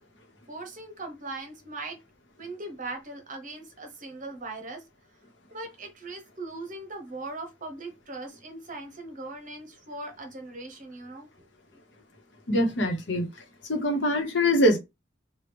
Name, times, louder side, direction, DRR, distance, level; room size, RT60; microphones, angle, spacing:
voice 1, 0.5-2.0 2.4-4.8 5.5-11.5, right 2 dB, 45° right, 0.9 m, -39 dB
voice 2, 12.5-13.3 13.7-14.8, left 1 dB, 70° left, 1.0 m, -23 dB
3.0 x 2.3 x 3.4 m
head